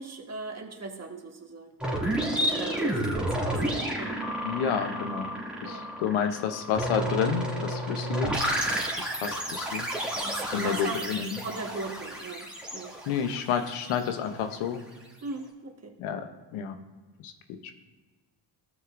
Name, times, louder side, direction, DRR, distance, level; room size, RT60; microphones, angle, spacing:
voice 1, 0.0-1.7 2.4-4.1 5.6-5.9 9.2-9.3 10.2-11.0 11.4-13.0 15.2-15.9, right 3 dB, 30° right, 3 dB, 1.5 m, -39 dB
sound 1, 1.8-14.5, right 1 dB, ahead, 2.3 m, -31 dB
voice 2, 4.4-5.3 5.6-8.4 9.0-9.9 10.5-11.4 13.1-14.8 16.0-16.2 16.5-16.8 17.2-17.3 17.6-17.7, left 8 dB, 75° left, 8 dB, 0.9 m, -30 dB
13.5 x 6.3 x 2.5 m, 1.3 s
supercardioid pair, 65°, 49 cm